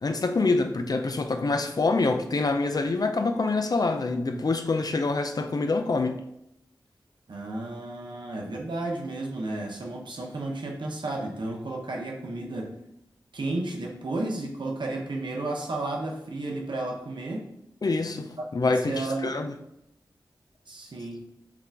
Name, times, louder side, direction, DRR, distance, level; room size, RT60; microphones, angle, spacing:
voice 1, 0.0-6.2 17.8-19.5, left 3 dB, 50° left, 6 dB, 0.5 m, -26 dB
voice 2, 7.3-12.8 13.3-17.5 18.4-19.4 20.7-21.3, right 2 dB, 65° right, 0 dB, 0.8 m, -33 dB
4.8 x 2.5 x 3.4 m, 0.82 s
cardioid pair, 40°, 8 cm